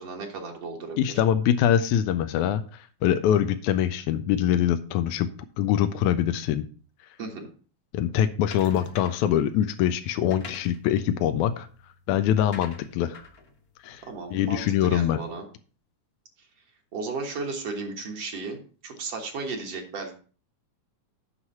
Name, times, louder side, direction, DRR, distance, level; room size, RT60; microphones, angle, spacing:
voice 1, 0.0-1.2 7.2-7.5 14.0-15.4 16.9-20.2, right 4 dB, 60° right, 2 dB, 2.3 m, -35 dB
voice 2, 1.0-5.3 5.6-6.7 7.9-11.7 12.1-13.3 13.8-14.0 14.3-15.2, left 10 dB, 85° left, 9 dB, 2.0 m, -24 dB
sound 1, 8.5-9.4 10.1-14.8, left 3 dB, 50° left, 1.1 m, -46 dB
8.0 x 6.0 x 5.6 m, 0.40 s
omnidirectional pair, 3.4 m